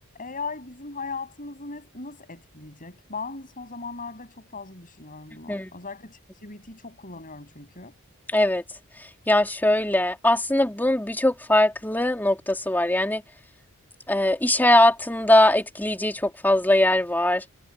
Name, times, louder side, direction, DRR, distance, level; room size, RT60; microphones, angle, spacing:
voice 1, 0.2-7.9, left 4 dB, 40° left, 7.7 m, -38 dB
voice 2, 8.3-8.6 9.3-13.2 14.1-17.4, left 1 dB, 10° left, 3.4 m, -21 dB
head